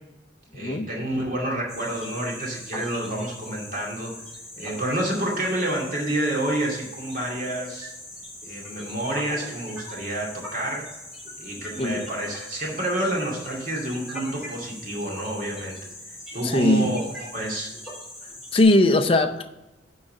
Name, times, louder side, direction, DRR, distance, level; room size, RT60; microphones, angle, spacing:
voice 1, 0.5-4.1 4.6-7.9 8.4-10.9 11.4-15.9 16.3-17.7, right 1 dB, 45° right, -2 dB, 2.2 m, -29 dB
sound 1, 1.7-18.6, left 1 dB, ahead, 3.1 m, -41 dB
voice 2, 16.4-16.9 18.5-19.6, left 2 dB, 30° left, 7 dB, 0.5 m, -20 dB
9.8 x 3.9 x 6.2 m, 0.99 s
head